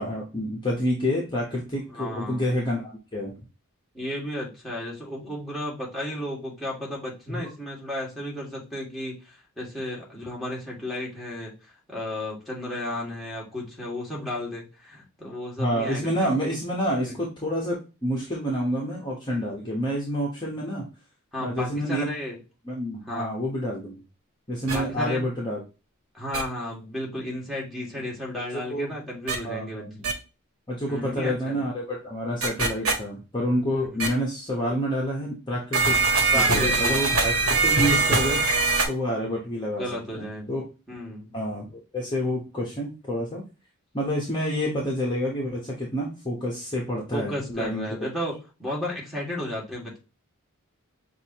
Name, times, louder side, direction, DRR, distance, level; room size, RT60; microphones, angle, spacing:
voice 1, 0.0-3.3 7.3-7.4 15.6-20.8 21.4-22.1 22.6-24.0 24.5-25.6 27.9-28.0 28.5-28.9 29.4-30.1 30.7-38.4 38.9-39.8 40.2-40.6 41.3-43.4 43.9-47.9, equal, 20° left, -3 dB, 1.2 m, -28 dB
voice 2, 1.9-2.4 3.9-11.5 11.9-16.1 17.1-17.2 21.3-22.4 23.1-23.3 24.7-25.2 26.1-29.9 30.9-31.6 36.3-36.9 39.8-40.6 40.9-41.4 47.1-48.3 48.6-50.0, left 1 dB, ahead, -4 dB, 2.0 m, -33 dB
sound 1, 24.7-24.8 26.3-26.4 29.3-29.4 30.0-30.1 32.4-32.9 34.0-34.1 35.7-38.8, right 3 dB, 75° right, 1.3 m, -22 dB
6.4 x 2.7 x 3.0 m, 0.31 s
head